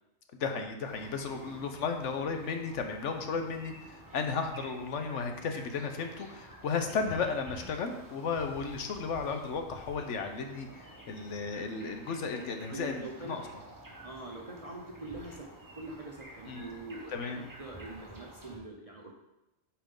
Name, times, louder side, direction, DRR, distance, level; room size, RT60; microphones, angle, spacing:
voice 1, 0.4-13.4 16.5-16.7 17.1-17.5, left 5 dB, 70° left, 5 dB, 1.1 m, -34 dB
sound 1, 0.8-18.6, right 1 dB, 15° right, 1.0 m, -51 dB
voice 2, 12.7-13.4 14.0-15.5 15.8-19.1, right 2 dB, 35° right, 0 dB, 0.7 m, -44 dB
8.9 x 4.8 x 3.7 m, 0.94 s
omnidirectional pair, 1.4 m